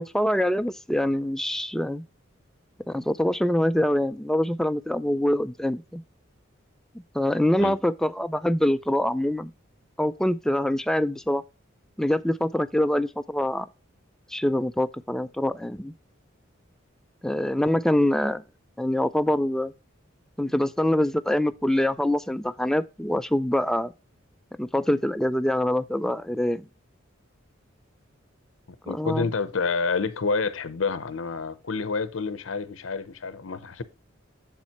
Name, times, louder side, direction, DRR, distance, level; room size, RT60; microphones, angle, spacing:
voice 1, 0.0-2.0 2.9-6.0 7.1-9.5 10.0-11.4 12.0-13.7 14.3-15.9 17.2-18.4 18.8-19.7 20.4-23.9 24.6-26.7 28.9-29.3, left 1 dB, 5° left, 0.3 m, -24 dB
voice 2, 28.9-33.8, left 4 dB, 85° left, 0.7 m, -28 dB
7.4 x 7.3 x 2.9 m
head